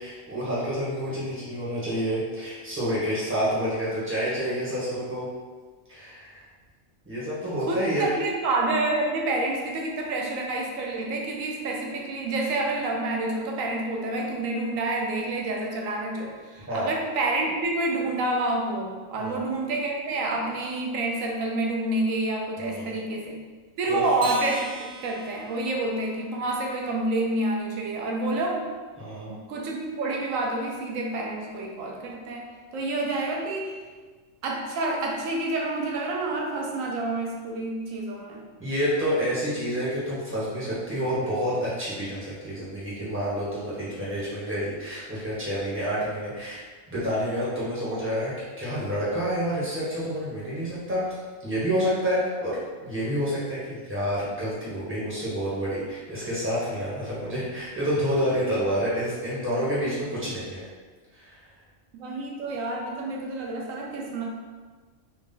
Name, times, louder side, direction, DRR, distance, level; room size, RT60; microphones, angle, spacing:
voice 1, 0.0-5.3 5.9-6.4 7.0-8.1 16.6-16.9 19.2-19.4 22.6-22.9 23.9-24.0 29.0-29.3 38.6-46.6 46.9-52.6 52.8-60.7 61.2-61.4, equal, 10° right, -10 dB, 1.3 m, -28 dB
voice 2, 7.7-23.4 23.8-24.6 25.0-28.7 29.3-33.8 34.4-38.5 61.9-64.2, right 2 dB, 85° right, 0 dB, 1.0 m, -28 dB
Acoustic guitar, 24.2-26.8, right 2 dB, 55° right, 0.9 m, -40 dB
4.1 x 2.4 x 3.7 m, 1.4 s
omnidirectional pair, 1.3 m